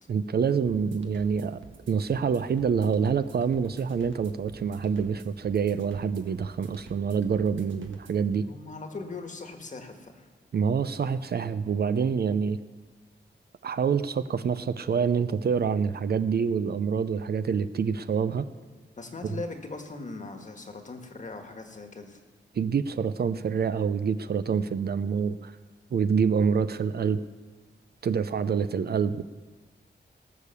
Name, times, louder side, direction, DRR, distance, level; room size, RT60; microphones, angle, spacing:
voice 1, 0.1-8.5 10.5-12.6 13.6-18.5 22.6-25.5 25.9-27.2 28.0-29.2, right 6 dB, 55° right, 13 dB, 0.5 m, -26 dB
sound 1, 0.7-8.3, right 4 dB, 80° right, 1.4 m, -50 dB
voice 2, 8.3-10.3 19.0-22.2, left 3 dB, 40° left, 5 dB, 1.5 m, -40 dB
18.0 x 6.7 x 6.9 m, 1.3 s
wide cardioid pair, 125°, 20 cm